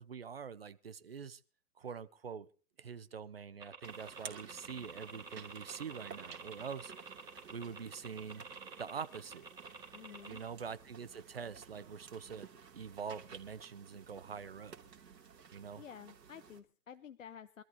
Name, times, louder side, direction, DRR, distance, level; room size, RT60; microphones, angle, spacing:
voice 1, 0.0-1.4 1.8-2.5 2.8-6.9 7.5-8.4 8.8-9.5 10.3-12.5 12.7-14.8 15.5-15.8, right 6 dB, 40° right, 0.6 m, -45 dB
sound 1, 3.6-10.4, right 4 dB, 5° right, 3.6 m, -49 dB
sound 2, 3.8-16.6, right 6 dB, 75° right, 2.9 m, -54 dB
voice 2, 9.9-10.4 15.8-17.6, left 8 dB, 50° left, 0.7 m, -51 dB
25.0 x 13.5 x 2.9 m
hypercardioid pair, 165°, 49 cm